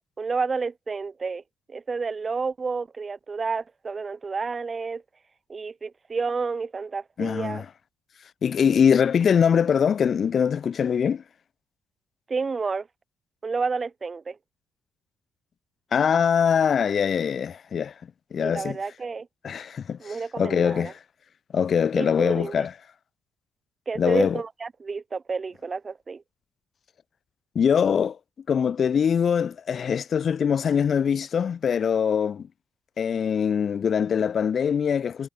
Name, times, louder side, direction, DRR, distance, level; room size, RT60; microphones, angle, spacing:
voice 1, 0.2-1.4 1.7-5.0 5.5-7.6 12.3-12.9 13.4-14.4 18.4-19.3 20.0-20.9 21.9-22.7 23.9-26.2, right 4 dB, 35° right, 1.4 m, -30 dB
voice 2, 7.2-7.6 8.4-11.2 15.9-17.9 18.3-18.8 19.4-20.9 21.5-22.7 24.0-24.4 27.5-28.2 28.5-32.5 33.0-35.3, left 7 dB, 50° left, 1.2 m, -23 dB
cardioid pair, 90°, 0 cm